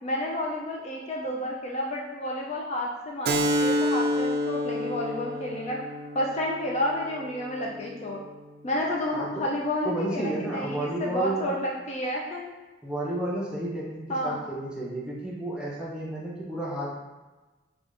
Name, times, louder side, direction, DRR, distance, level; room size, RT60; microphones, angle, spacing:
voice 1, 0.0-5.8 6.1-8.2 8.6-12.5 14.1-14.4, left 1 dB, 35° left, -2 dB, 0.4 m, -30 dB
Keyboard (musical), 3.2-8.4, equal, 55° right, 0.3 m, -29 dB
voice 2, 9.8-11.5 12.8-16.9, right 1 dB, 5° right, -6 dB, 0.7 m, -31 dB
4.9 x 2.3 x 2.5 m, 1.2 s
head